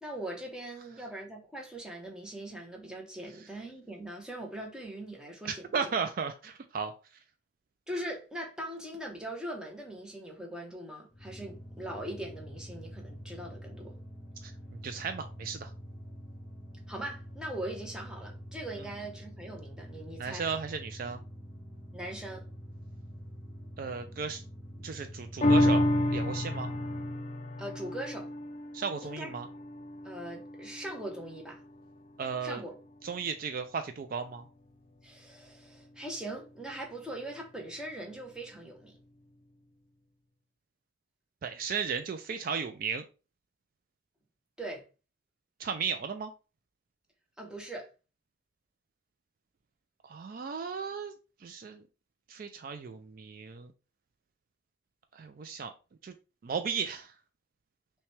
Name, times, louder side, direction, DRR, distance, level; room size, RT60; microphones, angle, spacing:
voice 1, 0.0-5.6 7.9-14.0 16.9-20.5 21.9-22.4 27.6-28.3 29.0-29.3 30.0-31.6 32.4-32.8 35.0-39.0 44.6-44.8 47.4-47.9, right 1 dB, 5° right, 0.8 m, -41 dB
voice 2, 5.4-6.9 14.4-15.7 20.2-21.2 23.8-24.4 24.8-25.8 26.1-26.7 28.7-29.5 32.2-32.6 33.0-34.5 41.4-43.0 45.6-46.3 50.0-51.1 51.4-51.8 52.3-53.7 55.1-55.7 56.0-56.1 56.4-57.1, right 5 dB, 45° right, 0.3 m, -35 dB
sound 1, 11.1-27.2, equal, 30° right, 1.1 m, -46 dB
sound 2, 25.4-32.1 32.5-32.6, left 1 dB, 30° left, 0.3 m, -30 dB
5.7 x 2.2 x 3.2 m
head